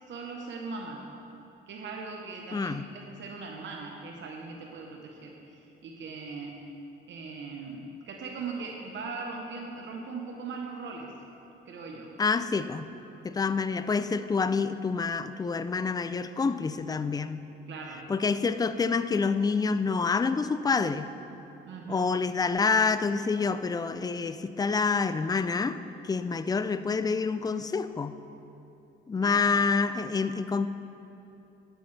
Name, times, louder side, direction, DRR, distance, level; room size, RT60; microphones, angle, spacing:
voice 1, 0.1-1.0 1.7-6.6 7.1-11.1 11.7-12.1 17.7-18.1 21.7-22.1 29.2-29.4, right 4 dB, 70° right, 1 dB, 1.0 m, -40 dB
voice 2, 2.5-2.8 12.2-12.9 13.2-17.4 18.1-21.1 21.9-28.2 29.1-30.7, left 4 dB, 20° left, 12 dB, 0.4 m, -27 dB
12.0 x 9.2 x 3.3 m, 2.9 s
cardioid pair, 90°, 20 cm